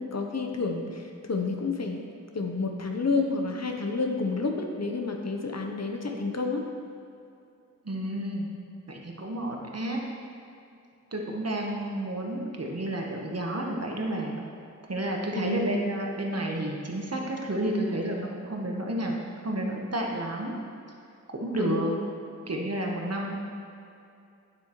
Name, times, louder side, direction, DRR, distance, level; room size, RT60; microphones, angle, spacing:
voice 1, 0.0-2.0 2.3-6.6 15.3-15.7 21.6-22.0, left 3 dB, 55° left, 3 dB, 0.7 m, -30 dB
voice 2, 7.8-8.5 8.9-10.0 11.1-14.4 14.9-19.1 19.4-20.6 21.3-21.9 22.5-23.3, right 1 dB, 50° right, 0 dB, 1.0 m, -31 dB
9.0 x 7.4 x 3.0 m, 2.6 s
wide cardioid pair, 65°, 32 cm